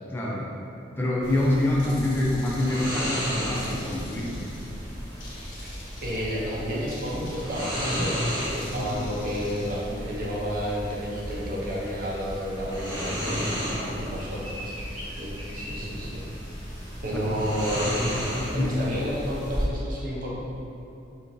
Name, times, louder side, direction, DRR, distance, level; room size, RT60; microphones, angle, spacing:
voice 1, 0.1-0.5 1.0-4.6 8.7-9.0 13.7-14.0 15.5-15.8 18.5-18.8, left 1 dB, 10° left, -5 dB, 0.3 m, -26 dB
sound 1, 1.2-19.6, equal, 20° right, 0.8 m, -33 dB
sound 2, 1.8-3.1 3.5-4.8 5.2-6.4 6.9-7.8 8.5-9.8, left 2 dB, 80° left, 0.5 m, -47 dB
voice 2, 6.0-13.5 14.0-14.8 15.2-16.2 17.0-18.2 18.5-20.4, equal, 50° right, -5 dB, 0.5 m, -31 dB
sound 3, 12.8-18.8, equal, 85° right, 1.5 m, -45 dB
2.9 x 2.4 x 2.5 m, 2.7 s
head